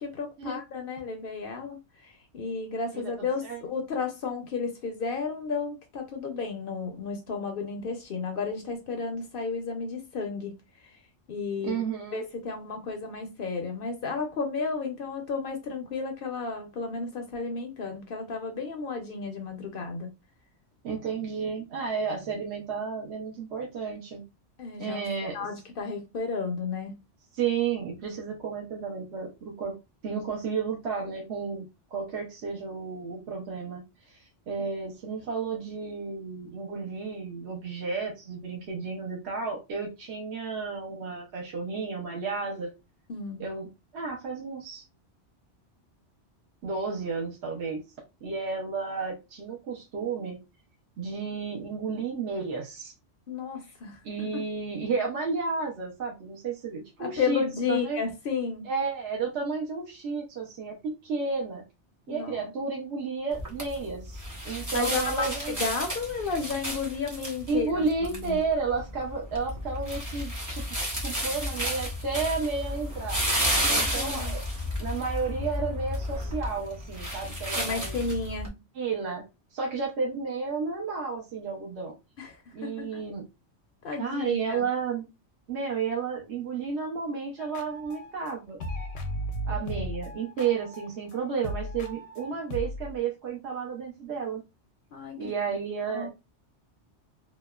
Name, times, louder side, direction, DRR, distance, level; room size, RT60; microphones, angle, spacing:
voice 1, 0.0-10.6 10.8-11.0 11.3-11.8 12.1-20.1 24.6-25.1 25.3-26.9 43.1-43.5 53.3-54.3 57.0-58.7 62.1-62.4 64.7-68.4 73.5-74.3 77.6-78.6 82.2-82.9 83.8-84.7 94.9-95.2 95.9-96.1, left 5 dB, 60° left, 0.6 m, -33 dB
voice 2, 2.9-3.6 11.6-12.2 20.8-24.2 24.8-25.4 27.3-29.7 30.0-31.7 31.9-42.7 43.4-43.7 43.9-44.8 46.6-47.8 48.2-50.4 51.0-52.9 54.0-57.4 57.7-58.0 58.6-61.6 62.1-65.6 67.5-73.2 73.7-74.4 74.8-78.0 78.7-79.2 79.5-81.9 82.5-83.2 84.0-85.1 85.5-88.6 89.4-94.4 95.2-96.1, right 5 dB, 65° right, 1.0 m, -32 dB
sound 1, 63.3-78.5, equal, 25° right, 0.4 m, -32 dB
sound 2, 87.4-88.3 88.6-93.0, equal, 90° left, 0.9 m, -36 dB
2.9 x 2.0 x 2.2 m
omnidirectional pair, 1.2 m